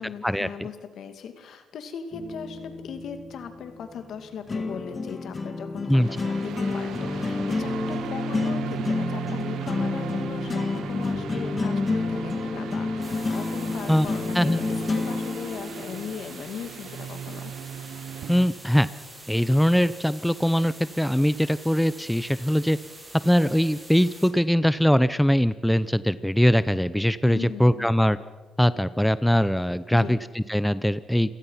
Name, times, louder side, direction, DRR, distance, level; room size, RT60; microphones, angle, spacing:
voice 1, 0.0-17.5 27.2-27.9 29.9-30.2, left 7 dB, 70° left, 8 dB, 2.5 m, -38 dB
sound 1, 2.1-16.1, left 3 dB, 30° left, 2.6 m, -29 dB
sound 2, 6.0-18.5, right 11 dB, 75° right, 0.9 m, -37 dB
sound 3, 13.0-24.3, right 1 dB, 15° right, 8.0 m, -45 dB
voice 2, 18.3-18.9 19.3-22.8 23.2-28.2 28.6-31.3, equal, 5° left, 15 dB, 0.7 m, -21 dB
28.5 x 17.5 x 5.8 m, 1.3 s
cardioid pair, 90°, 0 cm